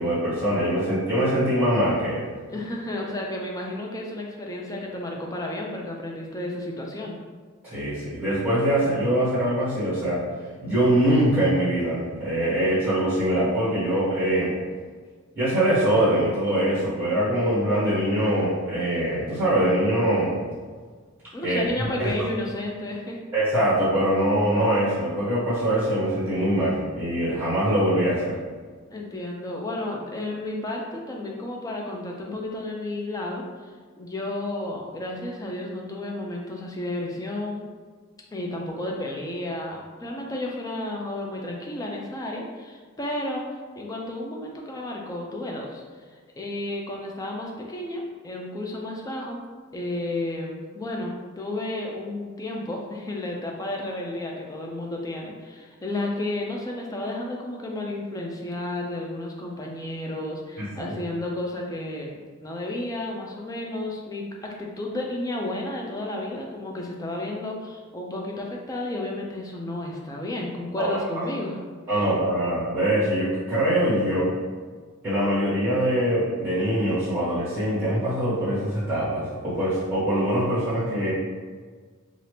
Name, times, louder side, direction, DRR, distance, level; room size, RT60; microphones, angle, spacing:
voice 1, 0.0-2.3 7.6-10.2 10.6-14.5 15.3-20.4 21.4-22.3 23.3-28.3 60.6-60.9 70.8-71.0 71.9-74.3 75.0-81.1, right 1 dB, 10° right, -13 dB, 1.3 m, -23 dB
voice 2, 2.5-7.2 21.3-23.2 28.9-33.4 34.0-37.6 38.3-43.5 43.8-45.8 46.4-49.4 49.7-62.1 62.4-71.6 71.9-72.1, left 1 dB, 15° left, -1 dB, 0.3 m, -32 dB
2.7 x 2.4 x 3.3 m, 1.5 s
head